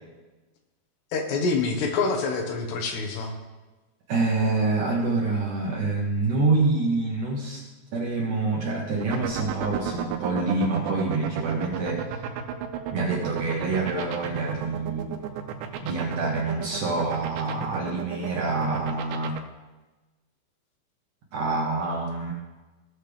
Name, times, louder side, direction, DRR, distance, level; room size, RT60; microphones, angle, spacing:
voice 1, 1.1-3.3, left 4 dB, 75° left, 2 dB, 3.1 m, -26 dB
voice 2, 4.1-7.6 7.9-12.0 12.9-15.1 15.8-19.4 21.3-22.3, right 3 dB, 65° right, -3 dB, 2.1 m, -26 dB
sound 1, 9.0-19.4, right 11 dB, 85° right, 2.9 m, -32 dB
17.5 x 6.6 x 3.4 m, 1.2 s
omnidirectional pair, 5.0 m